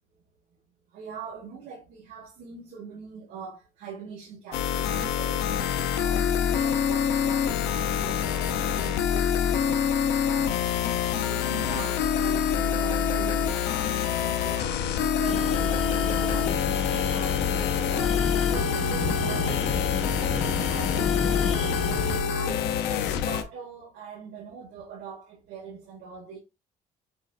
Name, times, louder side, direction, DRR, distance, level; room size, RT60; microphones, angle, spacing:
voice 1, 0.9-10.7 11.1-19.6 20.3-26.4, right 6 dB, 80° right, 2.3 m, -43 dB
sound 1, 4.5-23.4, left 8 dB, 90° left, 0.6 m, -26 dB
sound 2, 10.7-22.1, left 4 dB, 65° left, 2.4 m, -51 dB
sound 3, 15.3-22.2, left 3 dB, 35° left, 1.4 m, -32 dB
6.8 x 3.0 x 2.5 m
cardioid pair, 110°, 17 cm